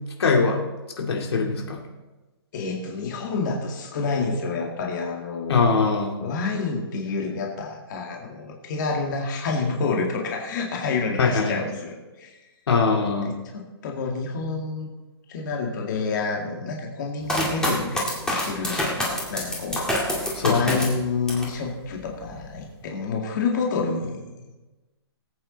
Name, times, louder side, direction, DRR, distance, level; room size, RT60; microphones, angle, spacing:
voice 1, 0.2-0.6 1.0-1.8 5.5-6.2 11.2-11.6 12.7-13.3 20.4-20.8, left 4 dB, 65° left, 1 dB, 2.2 m, -22 dB
voice 2, 2.5-5.6 6.2-12.4 13.0-14.9 15.3-20.2 20.5-24.5, left 4 dB, 45° left, 0 dB, 2.1 m, -28 dB
sound 1, 17.3-21.6 22.0-22.6, left 1 dB, 5° left, 2.1 m, -27 dB
20.0 x 8.8 x 4.0 m, 1.2 s
hypercardioid pair, 160°, 14 cm